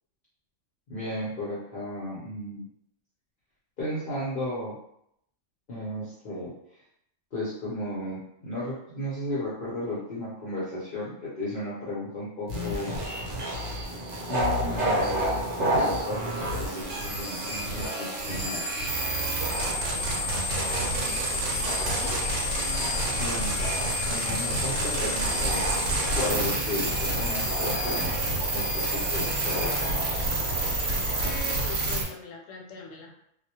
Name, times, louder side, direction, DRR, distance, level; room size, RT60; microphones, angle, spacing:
voice 1, 0.9-2.7 3.8-4.7 5.7-6.5 7.3-13.0 14.3-15.2 15.6-16.9 17.2-18.6 23.2-23.7 24.1-25.7 26.2-29.9, left 1 dB, 50° left, -8 dB, 0.7 m, -34 dB
sound 1, 12.5-32.0, right 1 dB, 85° right, 1.0 m, -29 dB
sound 2, 12.9-31.3, right 1 dB, 50° right, 0.8 m, -34 dB
voice 2, 20.9-22.2 31.4-33.1, left 3 dB, 90° left, 0 dB, 1.0 m, -43 dB
2.3 x 2.0 x 2.8 m, 0.76 s
omnidirectional pair, 1.3 m